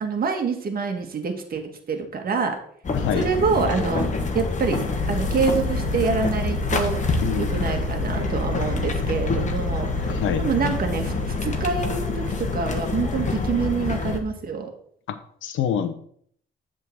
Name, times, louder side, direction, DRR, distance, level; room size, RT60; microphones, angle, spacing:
voice 1, 0.0-2.6 3.1-4.1 4.3-14.7, right 5 dB, 50° right, 5 dB, 1.5 m, -26 dB
sound 1, 2.8-14.2, left 3 dB, 40° left, 1.4 m, -26 dB
voice 2, 7.2-7.7 10.1-10.4 15.1-15.2 15.4-15.9, left 8 dB, 80° left, 10 dB, 0.9 m, -26 dB
7.6 x 3.8 x 6.4 m, 0.62 s
cardioid pair, 90°, 20 cm